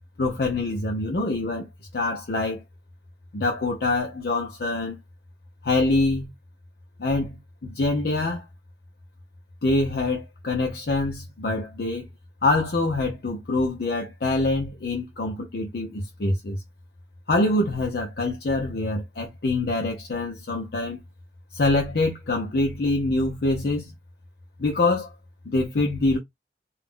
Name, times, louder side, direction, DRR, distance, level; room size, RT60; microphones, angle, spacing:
voice 1, 0.2-2.6 3.3-5.0 5.6-6.3 7.0-8.4 9.6-12.1 12.4-16.6 17.3-21.0 21.5-23.9 24.6-25.1 25.5-26.2, left 2 dB, 60° left, 0.5 m, -25 dB
2.3 x 2.0 x 3.5 m
head